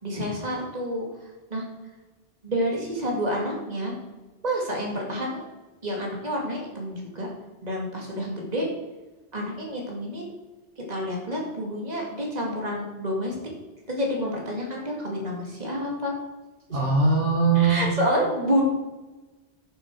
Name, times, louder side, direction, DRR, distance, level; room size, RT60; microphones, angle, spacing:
voice 1, 0.0-1.1 1.5-1.6 2.4-3.9 4.4-5.4 5.8-7.3 7.6-8.7 9.3-10.3 10.9-13.4 13.9-16.1 17.6-18.6, equal, 35° right, -1 dB, 2.3 m, -28 dB
voice 2, 16.7-17.9, right 4 dB, 80° right, -1 dB, 2.1 m, -21 dB
11.5 x 7.2 x 4.7 m, 1.2 s
omnidirectional pair, 1.2 m